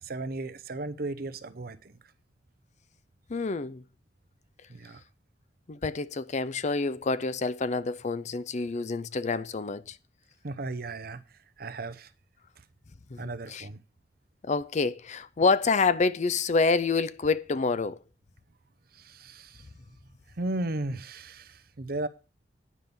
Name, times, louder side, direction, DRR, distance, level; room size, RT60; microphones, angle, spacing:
voice 1, 0.0-2.0 4.7-5.0 10.4-11.2 11.6-12.1 13.2-13.8 18.9-19.6 20.4-22.1, right 2 dB, 60° right, 0.9 m, -35 dB
voice 2, 3.3-3.8 5.7-10.0 13.1-13.2 13.5-13.7 14.4-18.0, left 4 dB, 40° left, 0.5 m, -27 dB
9.8 x 5.4 x 7.0 m
head